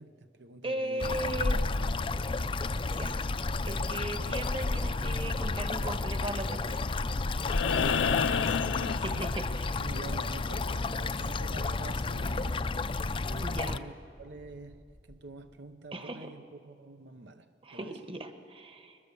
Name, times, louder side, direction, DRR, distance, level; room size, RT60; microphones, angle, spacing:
voice 1, 0.0-2.3 7.6-9.3 9.8-12.7 13.2-13.9 14.2-18.1, right 3 dB, 70° right, 0.8 m, -46 dB
voice 2, 0.6-1.6 2.9-3.2 3.6-7.0 9.0-9.8 13.4-13.8 15.9-16.3 17.6-19.0, right 1 dB, 30° right, 1.3 m, -37 dB
sound 1, 1.0-13.8, left 3 dB, 30° left, 0.5 m, -31 dB
sound 2, 7.4-9.7 11.6-11.7, left 7 dB, 90° left, 0.5 m, -29 dB
Wind, 13.4-15.6, equal, 90° right, 2.2 m, -55 dB
22.0 x 21.0 x 6.9 m
head